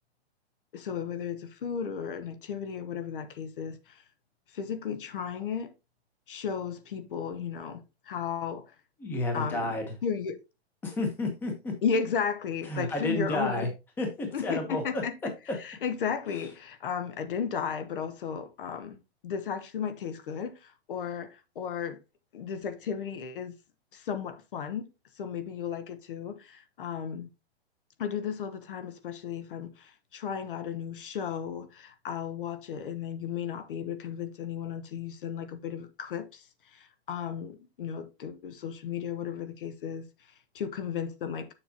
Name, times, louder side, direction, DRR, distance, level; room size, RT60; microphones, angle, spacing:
voice 1, 0.7-4.0 4.5-5.7 6.3-8.7 9.3-9.7 10.0-10.4 11.8-13.7 14.3-19.0 19.2-22.0 22.3-23.5 23.9-24.9 25.2-27.3 28.0-36.4 36.7-40.0 40.5-41.5, left 7 dB, 55° left, 1.0 m, -34 dB
voice 2, 9.0-9.8 10.8-11.7 12.7-13.7 14.0-15.0, left 2 dB, 5° left, 0.9 m, -31 dB
7.0 x 6.8 x 2.8 m
hypercardioid pair, 170°, 33 cm